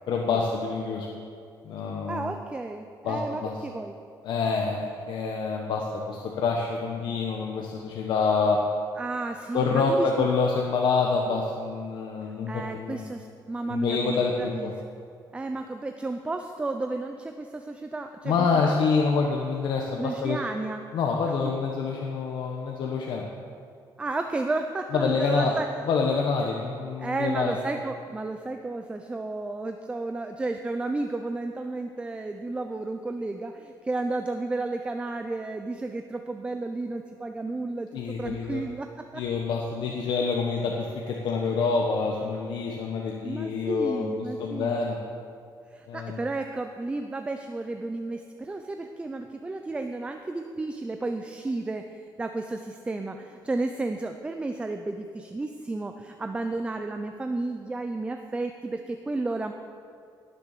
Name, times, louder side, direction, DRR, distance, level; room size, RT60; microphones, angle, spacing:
voice 1, 0.1-1.1 1.6-2.3 3.0-3.6 4.2-8.6 9.5-13.0 13.7-14.8 18.2-20.4 20.9-23.3 24.9-25.5 25.9-27.6 37.9-38.6 39.1-45.0 45.9-46.2, left 4 dB, 65° left, 0 dB, 1.3 m, -27 dB
voice 2, 2.1-3.9 9.0-10.3 12.5-14.7 15.3-18.3 20.0-20.8 21.4-21.5 24.0-25.7 27.0-37.9 38.2-39.2 43.2-44.8 45.7-59.5, right 2 dB, 15° right, 6 dB, 0.5 m, -32 dB
18.0 x 7.0 x 6.7 m, 2.4 s
cardioid pair, 150°, 8 cm